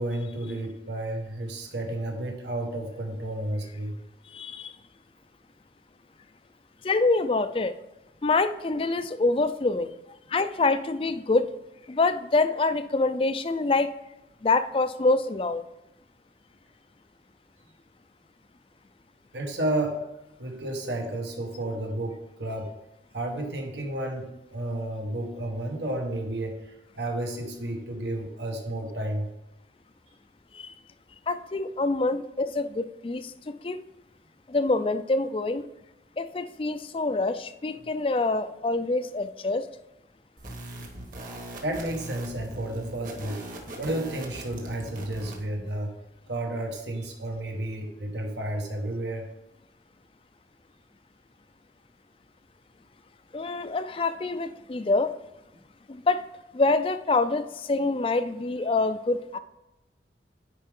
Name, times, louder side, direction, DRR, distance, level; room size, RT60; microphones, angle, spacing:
voice 1, 0.0-3.9 19.3-20.0 20.4-22.7 23.1-29.3 41.6-43.4 43.8-45.9 46.3-49.3, right 1 dB, 80° right, 2 dB, 1.6 m, -32 dB
voice 2, 4.3-4.7 6.8-7.7 8.2-9.9 10.3-11.5 11.9-13.9 14.4-15.6 30.5-30.7 31.3-33.8 34.5-35.6 36.2-39.7 53.3-55.1 55.9-56.2 56.5-59.4, left 3 dB, 30° left, 11 dB, 0.4 m, -26 dB
sound 1, 40.4-45.4, right 1 dB, 50° right, 1.5 m, -40 dB
9.8 x 4.8 x 3.7 m, 0.94 s
head